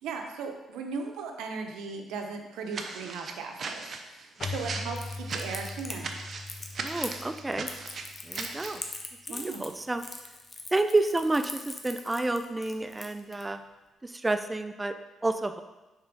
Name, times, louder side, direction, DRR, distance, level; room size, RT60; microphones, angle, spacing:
voice 1, 0.0-6.1 9.3-9.7, right 5 dB, 90° right, 3 dB, 0.8 m, -38 dB
sound 1, 2.7-8.8, right 4 dB, 55° right, 0.6 m, -38 dB
Keyboard (musical), 4.4-8.9, left 3 dB, 50° left, 0.4 m, -41 dB
Crackle, 5.0-13.4, left 3 dB, 35° left, 0.8 m, -41 dB
voice 2, 6.8-7.7 8.2-8.8 9.3-10.0 10.7-13.6 14.0-14.9 15.2-15.6, right 2 dB, 15° right, 8 dB, 0.4 m, -29 dB
6.5 x 3.5 x 5.3 m, 1.1 s
cardioid pair, 90°, 0 cm